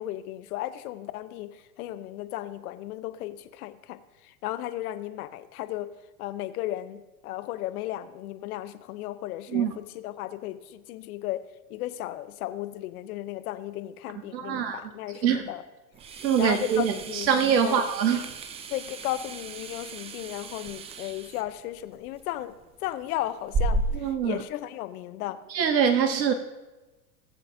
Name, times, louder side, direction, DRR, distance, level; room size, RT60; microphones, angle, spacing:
voice 1, 0.0-5.9 6.2-11.4 11.7-15.6 16.1-17.3 17.6-17.9 18.7-25.4, left 14 dB, 60° left, 0.8 m, -35 dB
voice 2, 14.3-14.8 15.2-15.4 16.2-18.3 24.0-24.4 25.5-26.3, right 7 dB, 90° right, 0.9 m, -24 dB
sound 1, 15.9-24.1, right 2 dB, 15° right, 0.4 m, -35 dB
19.0 x 7.6 x 2.7 m
hypercardioid pair, 105°, 49 cm